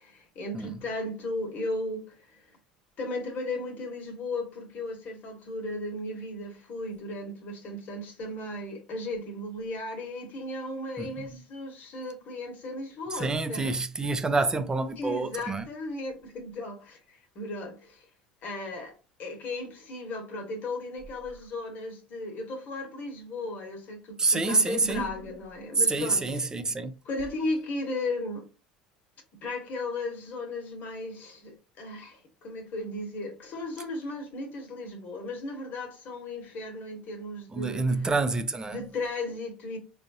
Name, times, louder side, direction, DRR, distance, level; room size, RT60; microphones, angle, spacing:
voice 1, 0.0-2.4 3.0-13.7 15.0-18.0 18.4-18.9 19.2-26.4 27.0-28.4 29.4-38.1 38.7-39.8, left 2 dB, 50° left, 1.2 m, -36 dB
voice 2, 13.1-15.7 24.2-25.1 25.8-26.9 37.5-38.8, right 3 dB, 20° right, 0.5 m, -27 dB
3.8 x 2.4 x 2.6 m
hypercardioid pair, 75°, 4 cm